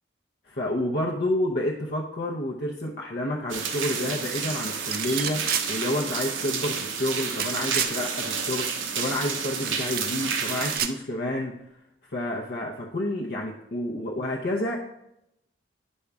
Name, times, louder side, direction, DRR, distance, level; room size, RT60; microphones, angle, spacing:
voice 1, 0.4-11.5 12.1-14.8, left 1 dB, 55° left, -2 dB, 0.8 m, -29 dB
sound 1, 3.5-10.8, right 6 dB, 85° right, 1.0 m, -30 dB
sound 2, 4.9-5.7 7.1-7.9 9.6-10.3 10.6-10.9, right 9 dB, 50° right, 0.4 m, -29 dB
9.8 x 5.4 x 3.5 m, 0.81 s
head